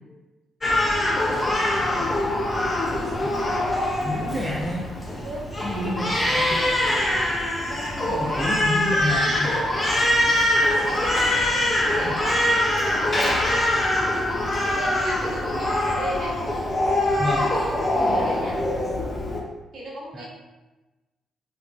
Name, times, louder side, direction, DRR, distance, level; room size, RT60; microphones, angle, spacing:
Crying sobbing, 0.6-19.4, left 1 dB, 25° left, 0.7 m, -23 dB
voice 1, 0.7-1.8 5.2-5.5 5.7-5.9 6.2-6.7 7.6-8.4 10.0-10.3 10.8-13.3 14.6-16.3 17.9-18.6 19.7-20.3, right 1 dB, 55° right, -4 dB, 0.7 m, -36 dB
voice 2, 3.2-3.6 4.0-4.8 5.6-6.5 8.0-9.6 12.0-12.2 17.2-17.5 20.1-20.3, left 1 dB, 15° right, -3 dB, 0.6 m, -29 dB
3.7 x 2.3 x 2.5 m, 1.1 s
figure-of-eight pair, 40°, 0 cm